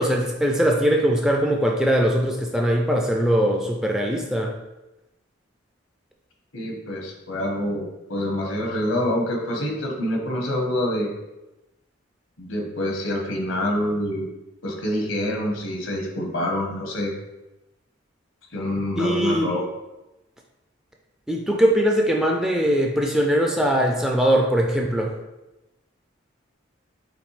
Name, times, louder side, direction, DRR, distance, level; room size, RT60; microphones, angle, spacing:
voice 1, 0.0-4.5 19.0-19.5 21.3-25.1, equal, 5° right, 0 dB, 0.4 m, -21 dB
voice 2, 6.5-11.1 12.4-14.3 14.6-17.1 18.5-19.7, left 1 dB, 80° left, 0 dB, 1.0 m, -26 dB
5.1 x 3.0 x 3.2 m, 0.99 s
head